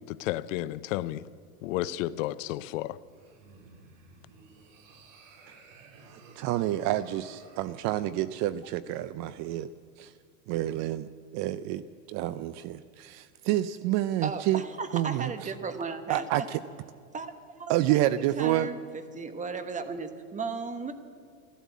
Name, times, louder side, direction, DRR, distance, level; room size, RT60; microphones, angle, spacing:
voice 1, 0.1-1.2 1.6-3.0, left 15 dB, 60° left, 0.6 m, -32 dB
sound 1, 3.1-7.8, right 4 dB, 60° right, 2.6 m, -54 dB
voice 2, 6.1-9.7 10.0-10.1 10.5-14.6 14.9-15.5 16.1-16.6 17.7-18.7, right 14 dB, 40° right, 0.5 m, -29 dB
voice 3, 14.2-16.2 17.1-17.3 17.6-17.7 18.4-18.8 19.1-20.9, right 4 dB, 15° right, 1.2 m, -35 dB
14.0 x 12.5 x 8.3 m
hypercardioid pair, 115°, 43 cm